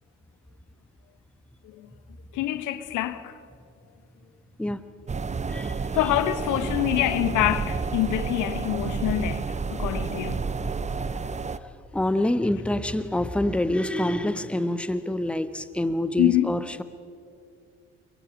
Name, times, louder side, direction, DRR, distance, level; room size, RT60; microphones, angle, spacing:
voice 1, 2.3-3.4 5.9-9.5 9.7-10.4 16.2-16.5, left 14 dB, 55° left, 1.2 m, -25 dB
sound 1, 5.1-11.6, right 4 dB, 20° right, 0.9 m, -30 dB
voice 2, 5.5-5.8 9.8-9.9 11.9-16.8, left 1 dB, 5° left, 1.1 m, -26 dB
29.0 x 23.0 x 5.3 m
figure-of-eight pair, 50°, 35 cm